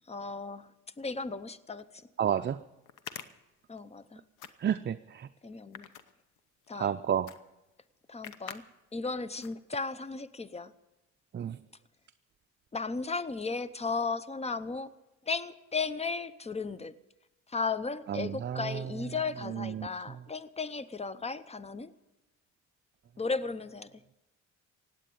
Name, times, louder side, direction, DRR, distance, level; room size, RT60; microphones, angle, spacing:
voice 1, 0.1-0.7 1.0-1.9 3.7-4.2 5.4-5.9 6.7-6.9 8.1-8.6 8.9-10.7 12.7-14.9 15.3-16.9 17.5-21.9 23.2-23.9, left 4 dB, 20° left, 16 dB, 0.7 m, -35 dB
sound 1, 1.8-1.9 2.9-4.1 4.4-4.9 5.5-6.7 7.3-7.4 7.7-7.8 8.2-8.6 9.0-9.1 9.4-9.9, left 9 dB, 90° left, 1.0 m, -45 dB
voice 2, 2.2-2.6 4.6-5.3 6.7-7.3 11.3-11.6 18.1-18.8 19.6-19.9, right 9 dB, 35° right, 9 dB, 0.5 m, -31 dB
17.0 x 9.0 x 8.6 m, 0.99 s
cardioid pair, 90°, 30 cm